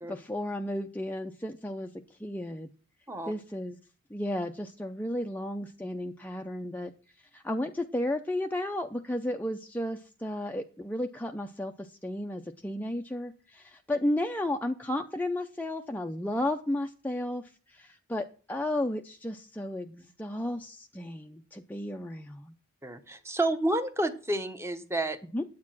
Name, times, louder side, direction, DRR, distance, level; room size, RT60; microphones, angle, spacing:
voice 1, 0.1-2.7 3.3-3.8 4.1-6.9 7.3-22.5 25.3-25.4, left 1 dB, 10° left, 4 dB, 0.5 m, -33 dB
voice 2, 22.8-25.2, right 1 dB, 10° right, 9 dB, 0.9 m, -30 dB
9.7 x 8.3 x 6.1 m, 0.39 s
head